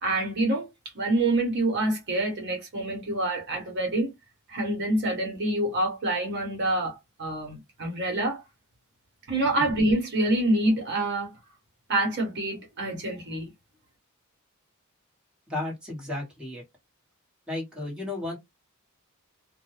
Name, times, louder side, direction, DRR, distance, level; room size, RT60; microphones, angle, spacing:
voice 1, 0.0-0.7 0.9-4.1 4.5-8.4 9.3-11.3 11.9-13.5, right 1 dB, 50° right, 1.0 m, -26 dB
voice 2, 15.5-16.6 17.5-18.4, left 2 dB, 5° right, 1.1 m, -33 dB
2.2 x 2.1 x 3.1 m
head